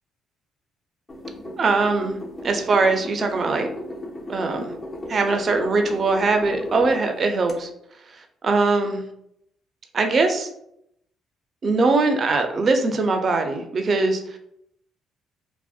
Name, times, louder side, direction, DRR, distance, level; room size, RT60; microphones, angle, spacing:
sound 1, 1.1-7.0 7.5-7.6, left 1 dB, 35° left, 0.6 m, -35 dB
voice 1, 1.6-2.2 2.4-3.7 4.3-4.7 5.1-7.7 8.1-9.0 9.9-10.5 11.6-14.4, right 3 dB, 45° right, 5 dB, 0.4 m, -21 dB
2.6 x 2.0 x 2.4 m, 0.74 s
cardioid pair, 85°, 0 cm